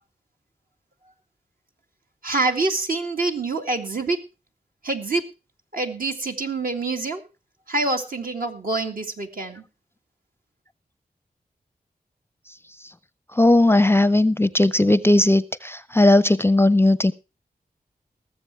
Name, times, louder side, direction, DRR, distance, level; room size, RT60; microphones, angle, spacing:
voice 1, 2.2-4.2 4.8-5.2 5.7-7.2 7.7-9.6, right 3 dB, 65° right, 2.0 m, -26 dB
voice 2, 13.4-17.1, left 1 dB, 15° left, 0.5 m, -17 dB
19.5 x 7.3 x 4.4 m
cardioid pair, 50°, 16 cm